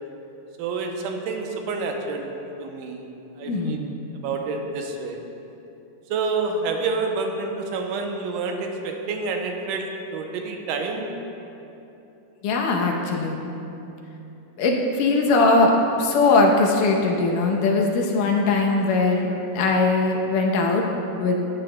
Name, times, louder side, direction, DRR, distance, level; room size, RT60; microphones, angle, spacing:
voice 1, 0.6-3.1 3.4-4.0 4.2-5.2 6.1-11.1, right 4 dB, 90° right, 3 dB, 2.3 m, -28 dB
voice 2, 3.4-3.9 12.4-13.4 14.6-20.8 21.2-21.4, left 3 dB, 80° left, 0 dB, 2.5 m, -20 dB
14.5 x 9.0 x 2.2 m, 2.9 s
omnidirectional pair, 3.7 m